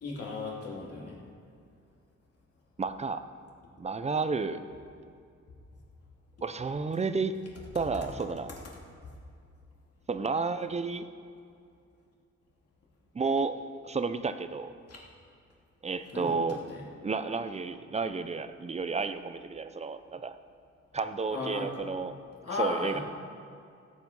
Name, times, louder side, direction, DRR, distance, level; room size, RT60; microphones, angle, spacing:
voice 1, 0.0-1.2 14.9-15.0 16.1-16.8 21.3-21.8 22.4-23.0, left 3 dB, 55° left, -4 dB, 3.2 m, -35 dB
voice 2, 2.8-3.3 3.8-4.6 6.4-7.3 7.7-8.5 10.1-11.0 13.1-13.6 13.8-14.7 15.8-16.6 17.0-20.4 20.9-22.1 22.6-23.0, right 4 dB, 25° right, 11 dB, 0.6 m, -31 dB
17.0 x 8.6 x 5.4 m, 2.3 s
cardioid pair, 120°, 29 cm